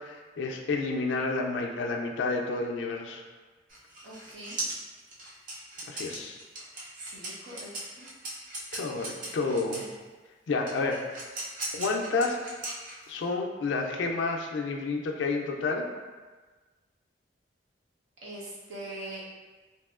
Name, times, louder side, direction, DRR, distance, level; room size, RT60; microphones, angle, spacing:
voice 1, 0.0-3.2 5.9-6.4 8.7-9.8 10.5-11.0 11.7-12.4 13.1-15.8, left 3 dB, 80° left, 2 dB, 0.3 m, -30 dB
sound 1, 3.7-9.9 10.7-13.3, right 2 dB, 50° right, 0.6 m, -38 dB
voice 2, 4.0-4.6 6.9-7.7 8.0-8.1 18.2-19.2, right 1 dB, 90° right, -6 dB, 0.8 m, -42 dB
2.9 x 2.7 x 2.3 m, 1.3 s
head